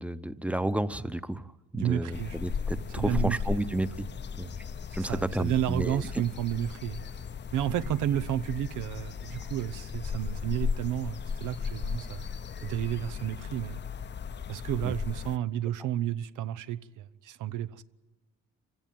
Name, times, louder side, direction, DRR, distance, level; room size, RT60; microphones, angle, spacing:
voice 1, 0.0-4.1 4.4-4.5 4.9-6.1 14.8-14.9, right 1 dB, 5° right, 0.9 m, -31 dB
voice 2, 1.7-2.4 2.9-3.6 4.9-7.0 7.5-12.3 12.6-13.8 14.5-17.8, right 11 dB, 85° right, 0.8 m, -31 dB
sound 1, 2.1-15.4, left 6 dB, 35° left, 0.7 m, -36 dB
26.0 x 16.0 x 9.2 m
cardioid pair, 90°, 30 cm